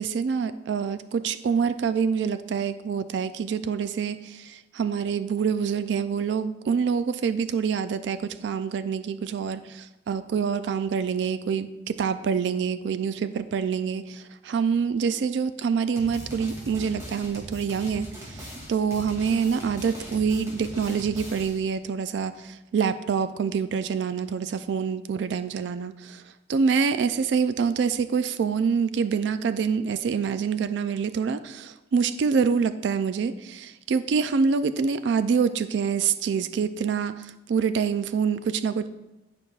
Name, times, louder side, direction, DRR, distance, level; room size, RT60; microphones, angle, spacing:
voice 1, 0.0-26.2 26.5-38.9, right 6 dB, 80° right, 12 dB, 0.3 m, -26 dB
sound 1, 16.0-21.7, equal, 15° right, 2.3 m, -40 dB
13.5 x 5.3 x 2.4 m, 1.0 s
head